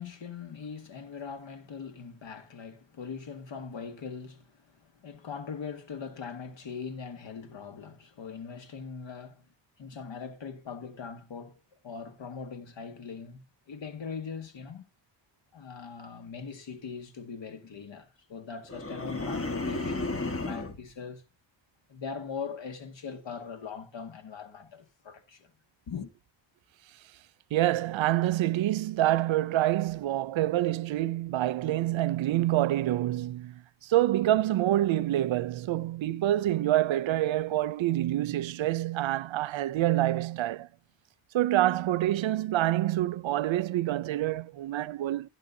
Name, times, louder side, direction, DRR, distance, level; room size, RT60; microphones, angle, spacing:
voice 1, 0.0-9.5 9.8-14.9 15.5-21.2 21.9-25.5 25.9-26.1, left 5 dB, 75° left, 1.9 m, -41 dB
sound 1, 18.7-20.8, left 2 dB, 30° left, 1.6 m, -33 dB
voice 2, 27.5-40.7 41.3-45.3, right 14 dB, 90° right, 0.6 m, -27 dB
16.0 x 9.2 x 2.7 m
wide cardioid pair, 95°, 45 cm